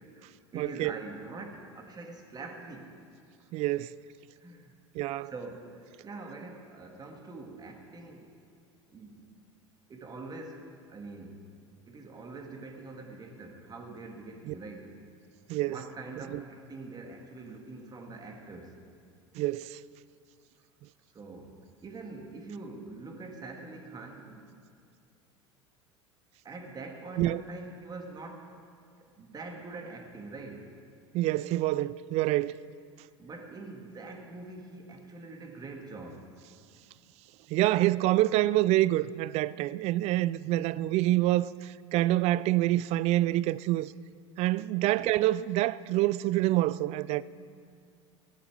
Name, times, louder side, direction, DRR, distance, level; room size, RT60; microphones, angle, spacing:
voice 1, 0.0-2.9 4.4-4.7 5.3-8.3 8.9-9.2 9.9-11.4 11.9-15.0 15.7-18.8 21.1-24.5 26.4-28.6 29.1-30.8 33.2-36.3 44.8-44.9, right 3 dB, 25° right, 2.0 m, -44 dB
voice 2, 0.5-0.9 3.5-3.9 4.9-5.3 14.5-14.6 15.5-15.8 16.3-16.4 19.4-19.8 27.2-27.4 31.1-32.6 37.5-43.9 44.4-47.2, right 16 dB, 45° right, 0.4 m, -26 dB
15.5 x 11.0 x 4.7 m
hypercardioid pair, 85°, 16 cm